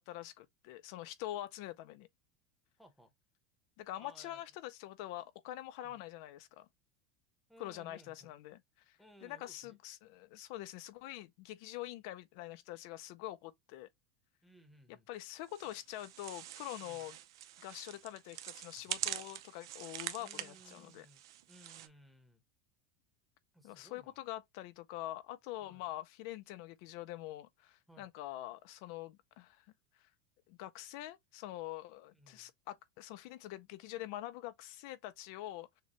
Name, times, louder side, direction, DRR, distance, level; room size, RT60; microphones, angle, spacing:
voice 1, 0.0-2.1 3.8-6.7 7.6-13.9 14.9-17.2 17.6-21.1 23.6-29.7 29.9-30.1 30.5-35.8, left 15 dB, 60° left, 0.4 m, -45 dB
voice 2, 2.8-3.1 4.0-4.4 5.8-6.0 7.5-8.4 9.0-9.8 14.4-15.1 16.8-17.1 20.2-22.4 23.5-24.2 25.6-25.9 27.9-28.1 32.1-32.5, right 1 dB, ahead, 0.9 m, -61 dB
sound 1, 15.5-21.9, right 13 dB, 85° right, 0.6 m, -44 dB
6.5 x 2.2 x 3.0 m
supercardioid pair, 160°, 2 cm